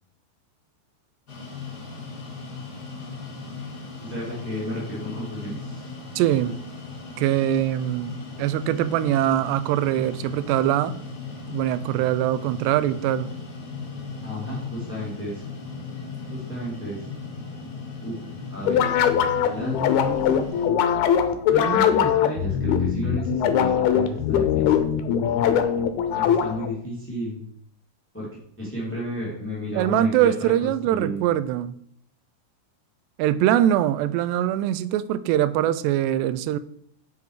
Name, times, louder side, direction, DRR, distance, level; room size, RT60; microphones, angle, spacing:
sound 1, 1.3-20.7, left 4 dB, 35° left, 1.7 m, -37 dB
voice 1, 4.0-5.9 14.2-15.4 16.3-17.0 18.0-18.2 18.5-18.9 19.4-20.5 21.5-24.9 26.1-27.4 28.1-28.3 28.6-31.3, equal, 5° left, 1.4 m, -32 dB
voice 2, 6.2-6.6 7.2-10.9 11.5-13.3 29.8-31.8 33.2-36.6, right 12 dB, 85° right, 2.7 m, -22 dB
sound 2, 18.6-26.8, left 9 dB, 75° left, 2.6 m, -21 dB
8.0 x 7.2 x 4.8 m
omnidirectional pair, 4.9 m